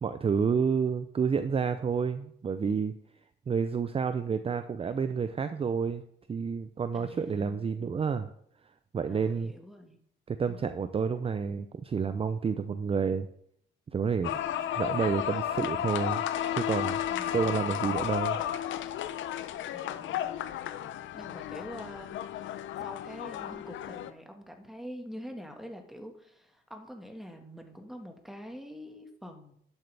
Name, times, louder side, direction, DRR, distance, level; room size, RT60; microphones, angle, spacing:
voice 1, 0.0-2.9 3.5-6.0 6.3-8.3 8.9-9.5 10.3-13.3 13.9-14.4 14.8-16.2 16.5-17.0 17.3-18.4, right 6 dB, 30° right, 10 dB, 0.5 m, -29 dB
voice 2, 6.9-8.1 9.1-10.0 10.5-10.8 17.1-17.7 19.7-20.6 21.1-22.2 22.8-29.5, equal, ahead, 4 dB, 1.7 m, -46 dB
sound 1, 14.2-24.1, left 10 dB, 75° left, 0.6 m, -33 dB
11.5 x 8.0 x 3.4 m, 0.69 s
cardioid pair, 90°, 20 cm